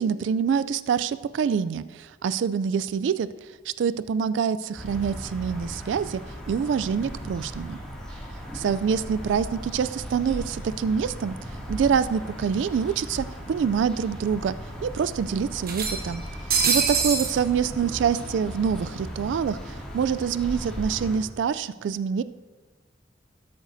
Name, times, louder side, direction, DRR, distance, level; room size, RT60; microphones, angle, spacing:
voice 1, 0.0-3.3 3.7-6.2 6.5-7.8 8.5-14.5 14.8-16.2 16.6-22.2, right 7 dB, 80° right, 15 dB, 0.3 m, -26 dB
sound 1, 4.8-21.2, equal, 5° left, 2.2 m, -37 dB
sound 2, 12.2-12.3 12.6-12.7 13.8-13.9 14.2-14.3 15.6-17.4, right 5 dB, 55° right, 1.1 m, -25 dB
13.0 x 10.5 x 2.7 m, 1.3 s
head